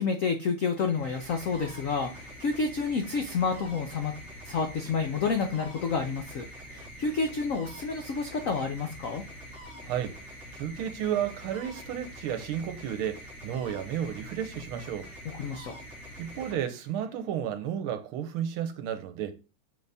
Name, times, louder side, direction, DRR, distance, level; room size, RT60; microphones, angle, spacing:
voice 1, 0.0-4.1 4.4-9.2 15.2-15.7, left 5 dB, 80° left, 0.7 m, -29 dB
sound 1, 0.7-17.2, equal, 45° left, 2.6 m, -45 dB
voice 2, 9.8-10.1 10.5-15.1 16.2-19.4, right 9 dB, 80° right, 1.6 m, -32 dB
6.9 x 4.1 x 3.4 m
omnidirectional pair, 2.4 m